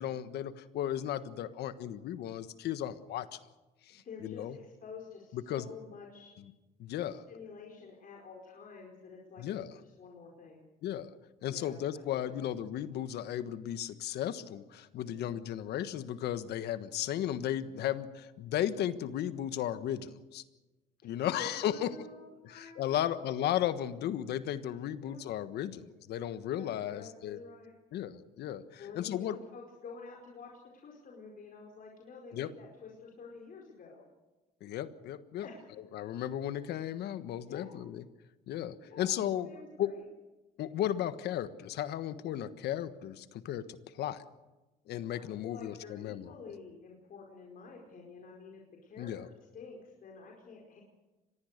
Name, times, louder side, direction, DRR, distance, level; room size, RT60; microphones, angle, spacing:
voice 1, 0.0-3.4 3.9-4.5 5.3-5.7 6.8-7.2 9.4-9.7 10.8-11.1 11.4-20.4 21.0-21.9 22.5-27.4 27.9-29.4 32.3-32.5 34.6-35.5 35.9-38.0 38.5-39.5 39.8-39.9 40.6-44.2 44.9-46.3 49.0-49.3, left 11 dB, 80° left, 12 dB, 1.4 m, -35 dB
voice 2, 4.0-6.3 7.3-10.6 11.5-12.5 15.0-15.4 21.0-23.3 25.0-25.2 26.5-27.7 28.8-34.0 35.4-35.7 37.4-37.7 38.8-39.1 39.4-40.0 45.1-50.8, left 4 dB, 55° left, -1 dB, 4.8 m, -49 dB
25.5 x 20.0 x 6.7 m, 1.1 s
cardioid pair, 85°, 17 cm